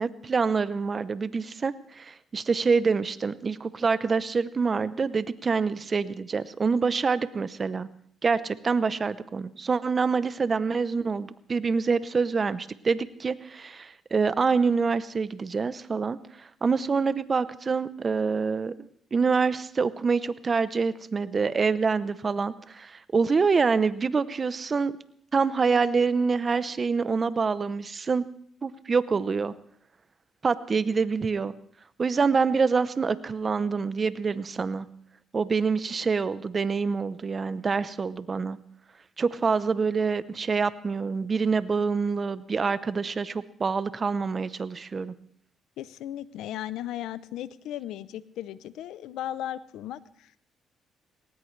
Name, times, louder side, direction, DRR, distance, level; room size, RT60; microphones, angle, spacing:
voice 1, 0.0-7.9 8.2-18.7 19.1-25.0 25.3-28.2 28.6-29.5 30.4-31.5 32.0-34.9 35.3-38.6 39.2-45.1, right 5 dB, 35° right, 15 dB, 0.8 m, -26 dB
voice 2, 45.8-50.4, left 12 dB, 85° left, 16 dB, 0.6 m, -36 dB
19.0 x 18.5 x 3.3 m, 0.65 s
cardioid pair, 90°, 0 cm